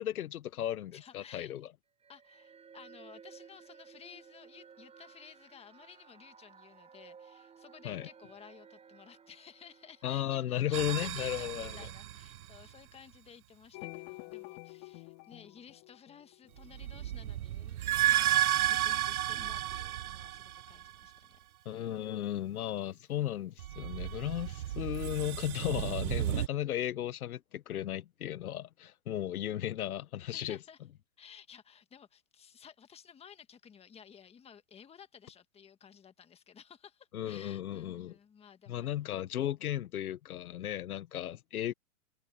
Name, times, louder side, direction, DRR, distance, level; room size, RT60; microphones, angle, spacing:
voice 1, 0.0-1.7 7.8-8.1 10.0-11.8 21.6-30.6 37.1-38.2 38.7-41.7, left 12 dB, 80° left, 1.4 m, -35 dB
voice 2, 0.9-1.6 2.1-21.4 30.3-30.8 31.2-38.9, left 7 dB, 15° left, 1.6 m, -55 dB
sound 1, 2.0-11.5, right 6 dB, 15° right, 4.9 m, -56 dB
sound 2, 10.7-12.7 16.6-21.1 23.6-26.5, right 13 dB, 85° right, 0.8 m, -32 dB
sound 3, 13.7-16.9, left 24 dB, 40° left, 3.8 m, -48 dB
hypercardioid pair, 135°, 43 cm